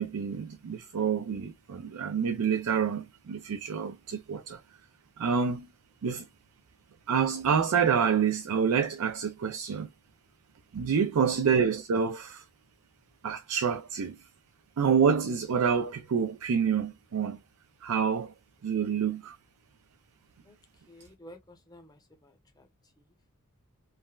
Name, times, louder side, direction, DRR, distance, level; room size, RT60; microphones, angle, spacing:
voice 1, 0.0-4.6 5.2-5.7 6.0-6.2 7.1-9.9 10.7-12.4 13.2-14.1 14.8-17.4 17.8-18.3 18.6-19.4, right 6 dB, 80° right, 0.4 m, -27 dB
voice 2, 10.9-11.3 20.4-20.6 20.9-22.7 23.0-23.1, equal, 15° left, 0.7 m, -53 dB
3.2 x 2.1 x 2.3 m
head